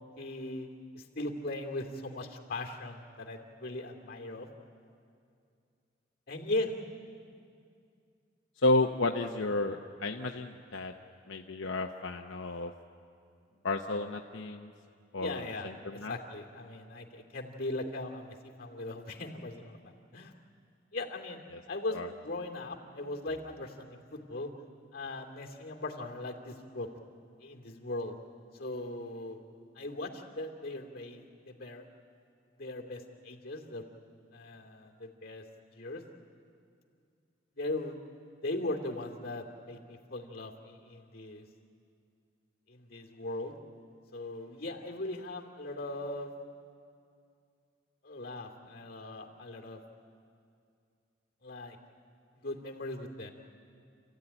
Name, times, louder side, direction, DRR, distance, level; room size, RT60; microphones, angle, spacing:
voice 1, 0.2-0.7 0.9-4.5 6.3-6.7 15.2-15.7 16.1-19.8 20.1-20.3 20.9-21.4 21.7-24.5 24.9-26.9 27.4-28.1 28.5-29.4 29.7-31.8 32.6-33.8 34.3-35.4 35.7-36.0 37.6-38.0 38.4-41.5 42.7-43.5 44.1-46.3 48.0-49.8 51.4-51.8 52.4-53.3, left 2 dB, 50° left, 1 dB, 2.7 m, -39 dB
voice 2, 8.6-10.9 11.3-12.7 13.6-14.7 15.1-16.2 21.5-21.6 21.9-22.1, left 2 dB, 85° left, 3 dB, 0.9 m, -32 dB
29.5 x 15.0 x 9.9 m, 2.4 s
head